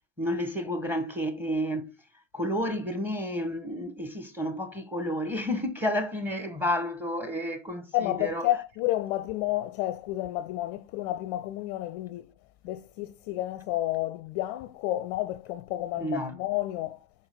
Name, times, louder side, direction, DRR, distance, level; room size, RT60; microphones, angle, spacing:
voice 1, 0.2-1.9 2.3-8.5 16.0-16.4, equal, 5° right, 1.1 m, -31 dB
voice 2, 7.9-12.3 12.6-17.0, left 15 dB, 45° left, 0.5 m, -30 dB
6.1 x 4.3 x 3.5 m
hypercardioid pair, 80°, 46 cm